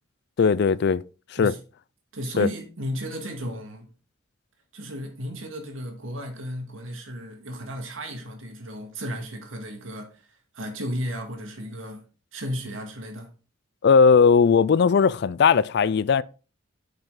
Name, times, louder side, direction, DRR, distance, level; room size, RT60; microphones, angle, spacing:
voice 1, 0.4-1.0 1.4-1.5 2.4-2.5 13.8-16.2, left 5 dB, 55° left, 0.4 m, -18 dB
voice 2, 2.1-3.9 4.7-10.2 10.5-12.0 12.3-13.3, equal, 85° right, 2.0 m, -34 dB
8.8 x 5.7 x 3.8 m
head